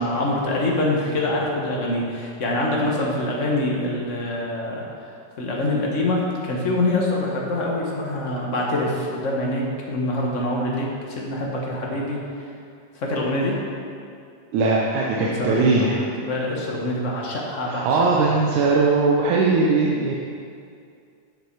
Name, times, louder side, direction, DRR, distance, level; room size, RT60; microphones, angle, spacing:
voice 1, 0.0-4.8 5.4-6.2 6.4-12.2 12.9-13.5 15.2-18.0, left 1 dB, 45° left, -3 dB, 1.0 m, -25 dB
voice 2, 14.5-16.0 17.7-20.1, right 3 dB, 85° right, -3 dB, 2.3 m, -20 dB
11.5 x 6.9 x 4.7 m, 2.3 s
omnidirectional pair, 3.4 m